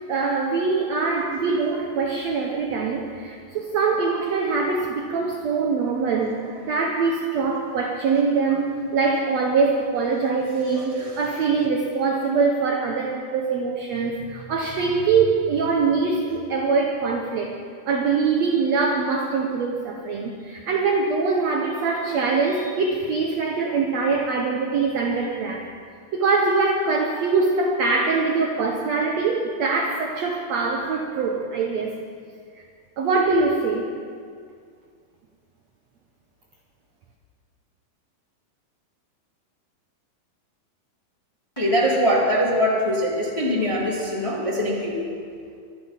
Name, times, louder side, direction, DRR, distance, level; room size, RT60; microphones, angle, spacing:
voice 1, 0.1-17.5 17.8-25.7 26.1-32.0 33.0-33.9, right 4 dB, 85° right, 1 dB, 1.5 m, -23 dB
voice 2, 41.5-45.0, equal, 15° left, -4 dB, 1.3 m, -22 dB
23.5 x 8.7 x 5.8 m, 2.2 s
omnidirectional pair, 4.5 m